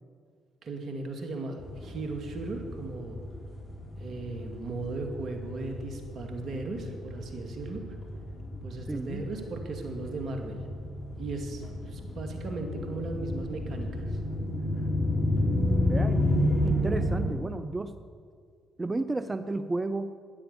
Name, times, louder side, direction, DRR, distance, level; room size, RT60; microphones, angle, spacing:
voice 1, 0.6-3.2 4.0-7.8 8.6-10.6 11.2-14.2, right 2 dB, 60° right, 4 dB, 2.4 m, -37 dB
sound 1, 1.6-17.3, left 1 dB, 35° left, 4.2 m, -31 dB
voice 2, 8.9-9.2 15.8-16.2 16.6-18.0 18.8-20.2, right 2 dB, 25° right, 11 dB, 0.6 m, -32 dB
13.0 x 10.0 x 7.0 m, 2.1 s
hypercardioid pair, 50°, 0 cm